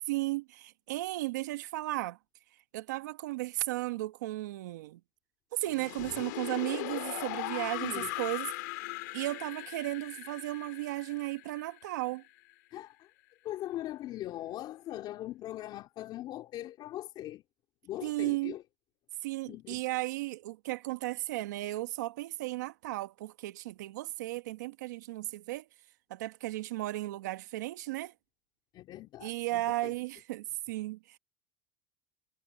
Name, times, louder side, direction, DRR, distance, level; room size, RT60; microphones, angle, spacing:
voice 1, 0.1-2.2 2.7-5.0 5.5-8.5 9.1-12.2 18.0-18.5 19.2-25.6 26.1-28.1 29.2-31.2, right 18 dB, 85° right, 1.2 m, -35 dB
sound 1, 5.6-12.5, left 22 dB, 80° left, 2.2 m, -39 dB
voice 2, 7.8-8.1 12.7-13.1 13.4-17.4 17.8-18.6 19.5-19.8 28.7-29.9, left 14 dB, 50° left, 3.2 m, -41 dB
supercardioid pair, 105°, 9 cm